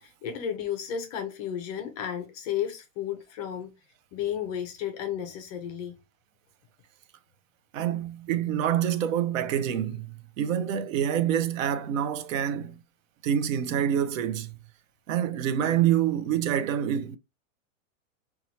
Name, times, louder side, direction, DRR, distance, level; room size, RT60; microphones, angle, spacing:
voice 1, 0.0-3.7 4.1-6.0, left 9 dB, 30° left, 0.4 m, -33 dB
voice 2, 7.7-12.8 13.2-14.6 15.1-17.2, right 10 dB, 70° right, 0.5 m, -26 dB
2.9 x 2.3 x 2.7 m
hypercardioid pair, 140°, 41 cm